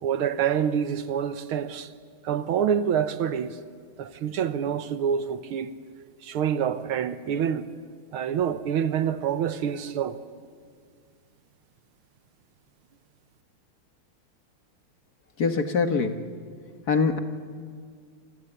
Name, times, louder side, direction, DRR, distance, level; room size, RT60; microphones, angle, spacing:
voice 1, 0.0-1.9 2.2-3.6 4.0-5.7 6.2-7.7 8.1-10.2, right 8 dB, 80° right, 1.9 m, -26 dB
voice 2, 15.4-16.2 16.9-17.2, left 4 dB, 50° left, 1.8 m, -23 dB
28.5 x 26.5 x 7.9 m
omnidirectional pair, 2.4 m